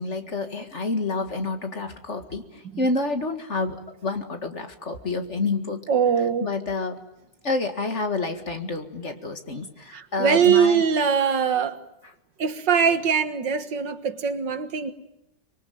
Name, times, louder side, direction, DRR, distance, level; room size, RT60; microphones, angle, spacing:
voice 1, 0.0-5.8 6.4-7.0 7.4-10.8, left 3 dB, 40° left, 7 dB, 2.2 m, -28 dB
voice 2, 5.9-6.5 9.9-11.8 12.4-14.9, right 7 dB, 75° right, 10 dB, 2.2 m, -22 dB
24.5 x 23.5 x 9.3 m, 0.82 s
omnidirectional pair, 2.0 m